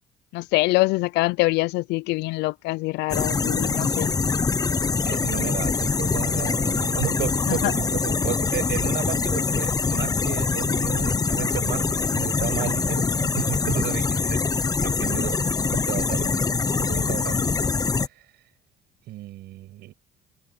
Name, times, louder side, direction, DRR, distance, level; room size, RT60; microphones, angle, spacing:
voice 1, 0.3-4.2 7.5-7.7, left 22 dB, 85° left, 0.5 m, -24 dB
sound 1, 3.1-18.1, left 4 dB, 20° left, 0.8 m, -24 dB
voice 2, 5.1-14.4 14.8-15.4 15.7-17.6 18.0-18.2 19.1-19.9, right 15 dB, 75° right, 7.3 m, -33 dB
cardioid pair, 110°, 17 cm